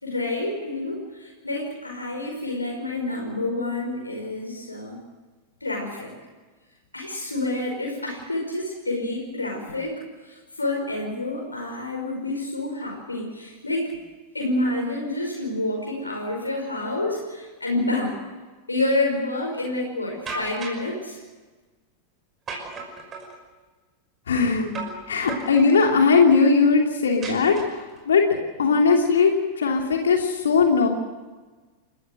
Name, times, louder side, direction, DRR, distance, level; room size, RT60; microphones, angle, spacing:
voice 1, 0.0-5.0 5.6-6.1 6.9-13.9 14.3-18.2 18.7-21.2, left 2 dB, 80° left, -1 dB, 5.2 m, -28 dB
sound 1, 20.3-20.9 22.5-23.4 24.7-25.0 25.3-26.0 27.2-28.0, right 3 dB, 25° right, 5.8 m, -35 dB
voice 2, 24.3-24.7 25.1-28.2 28.6-29.3 29.6-30.9, left 5 dB, 65° left, 2 dB, 2.9 m, -19 dB
30.0 x 14.5 x 7.8 m, 1.3 s
figure-of-eight pair, 90°, 0 cm